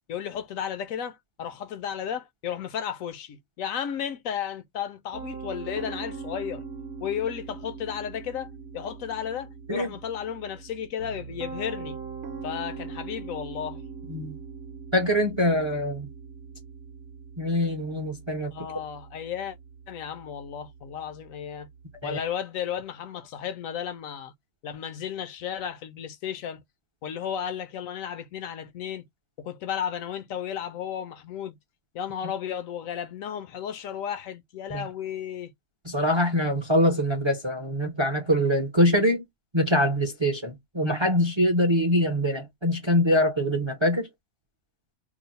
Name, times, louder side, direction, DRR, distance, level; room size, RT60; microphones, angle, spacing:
voice 1, 0.1-6.6 7.0-12.0 12.4-13.8 18.5-19.6 19.9-21.7 22.0-24.3 24.6-26.6 27.0-29.0 29.4-31.6 31.9-35.5, left 9 dB, 75° left, 1.0 m, -34 dB
Piano, 5.1-22.2, right 5 dB, 55° right, 0.8 m, -41 dB
voice 2, 14.9-16.1 17.4-18.7 22.0-22.2 34.7-34.9 35.8-39.2 39.5-44.1, equal, 30° right, 0.5 m, -24 dB
2.9 x 2.0 x 4.0 m
omnidirectional pair, 1.5 m